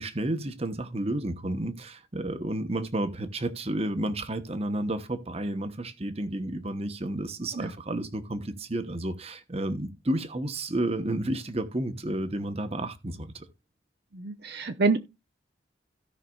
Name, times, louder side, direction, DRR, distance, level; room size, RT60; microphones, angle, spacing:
voice 1, 0.0-13.4, right 1 dB, 30° right, 1.1 m, -31 dB
voice 2, 14.1-15.0, right 3 dB, 55° right, 0.8 m, -26 dB
17.0 x 5.7 x 2.4 m
head